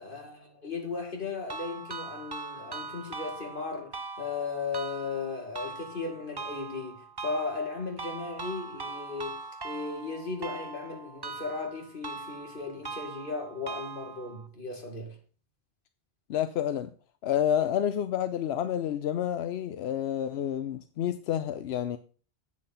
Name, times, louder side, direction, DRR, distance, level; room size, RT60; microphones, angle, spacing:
voice 1, 0.0-9.4 9.6-15.2, left 4 dB, 55° left, 2.4 m, -36 dB
sound 1, 1.5-14.5, right 4 dB, 30° right, 0.6 m, -41 dB
voice 2, 16.3-16.9 17.2-22.0, left 10 dB, 85° left, 0.9 m, -29 dB
8.6 x 6.3 x 5.5 m
omnidirectional pair, 1.1 m